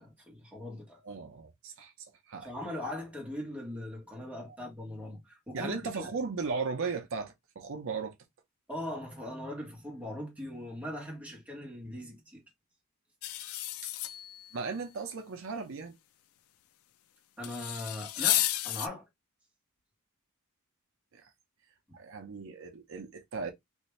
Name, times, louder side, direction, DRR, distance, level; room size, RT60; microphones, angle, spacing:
voice 1, 0.0-1.0 2.4-6.1 8.7-12.4 17.4-19.0 21.9-22.0, left 1 dB, 5° right, 1.3 m, -40 dB
voice 2, 1.0-1.9 2.3-2.5 4.5-4.6 5.5-8.2 13.8-13.9 14.5-15.9 21.1-21.3 21.9-23.5, right 4 dB, 65° right, 0.7 m, -36 dB
sound 1, 13.2-14.5 17.4-18.9, left 14 dB, 70° left, 0.4 m, -32 dB
3.3 x 2.6 x 3.1 m
head